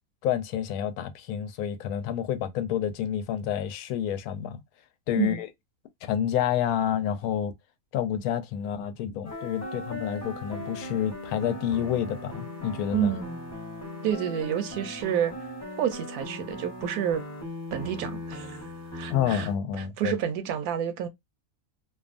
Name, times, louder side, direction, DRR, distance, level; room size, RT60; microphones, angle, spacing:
voice 1, 0.2-4.6 5.1-5.5 6.0-7.5 7.9-13.1 19.1-20.2, left 9 dB, 80° left, 1.0 m, -29 dB
sound 1, 9.2-19.6, left 1 dB, 15° left, 0.8 m, -39 dB
voice 2, 12.9-13.4 14.0-15.3 15.8-17.2 17.7-18.6 18.9-19.5 19.8-21.1, right 9 dB, 85° right, 1.1 m, -29 dB
2.6 x 2.3 x 2.4 m
omnidirectional pair, 1.6 m